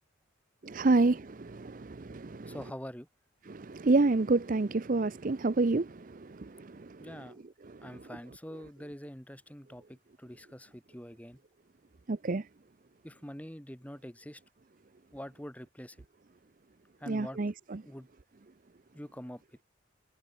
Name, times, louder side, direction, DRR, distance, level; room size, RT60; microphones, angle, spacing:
voice 1, 0.6-2.6 3.5-7.0 7.7-7.9 12.1-12.4 17.1-17.8, right 3 dB, 45° right, 0.6 m, -29 dB
voice 2, 2.5-3.1 7.0-7.3 7.8-11.4 13.0-14.4 15.1-16.0 17.0-17.4 17.9-18.1 18.9-19.4, equal, 5° left, 1.9 m, -45 dB
head